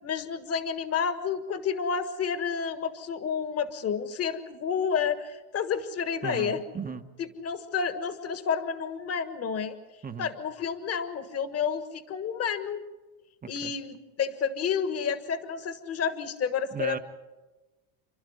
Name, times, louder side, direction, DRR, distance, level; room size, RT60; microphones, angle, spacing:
voice 1, 0.0-6.6 7.2-9.8 10.2-12.8 13.5-17.0, left 6 dB, 30° left, 10 dB, 1.5 m, -30 dB
voice 2, 6.2-7.1 10.0-10.3 13.4-13.7 16.7-17.0, right 5 dB, 20° right, 7 dB, 1.0 m, -36 dB
29.5 x 11.5 x 9.4 m, 1.2 s
supercardioid pair, 120°, 46 cm